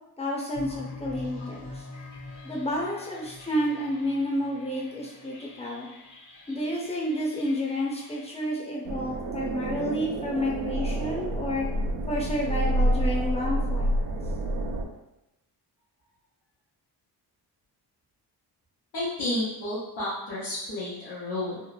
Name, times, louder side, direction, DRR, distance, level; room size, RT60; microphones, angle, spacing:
voice 1, 0.2-1.8 2.4-5.9 6.5-11.7 12.1-13.9, equal, 15° left, -3 dB, 0.6 m, -30 dB
sound 1, 0.5-8.4, left 2 dB, 45° left, 0.8 m, -44 dB
sound 2, 8.8-14.8, right 1 dB, 55° right, 0.5 m, -28 dB
voice 2, 18.9-21.6, left 1 dB, 90° left, -11 dB, 0.9 m, -31 dB
3.1 x 2.0 x 2.3 m, 0.94 s
cardioid pair, 95°, 42 cm